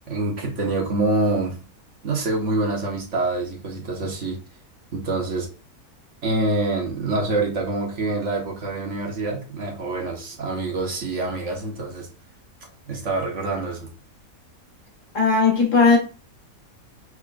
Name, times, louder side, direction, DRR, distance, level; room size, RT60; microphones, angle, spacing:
voice 1, 0.1-1.6 2.0-4.4 4.9-5.5 6.2-12.1 12.9-13.9, right 2 dB, 55° right, 0 dB, 1.5 m, -26 dB
voice 2, 15.1-16.0, left 4 dB, 60° left, 0 dB, 1.8 m, -17 dB
6.2 x 3.6 x 2.4 m, 0.35 s
omnidirectional pair, 1.5 m